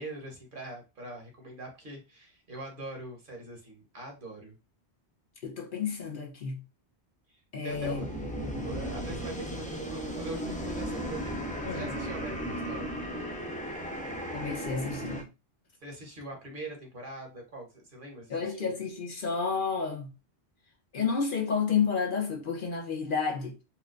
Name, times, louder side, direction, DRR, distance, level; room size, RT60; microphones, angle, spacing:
voice 1, 0.0-4.6 7.3-8.1 8.6-13.0 15.8-18.7, right 2 dB, 50° right, 1.2 m, -43 dB
voice 2, 5.4-6.6 7.5-8.1 11.6-11.9 14.3-15.2 18.3-20.1 20.9-23.5, left 5 dB, 55° left, 0.8 m, -30 dB
sound 1, 7.7-15.2, equal, 10° left, 0.3 m, -36 dB
4.3 x 2.2 x 2.4 m
omnidirectional pair, 1.1 m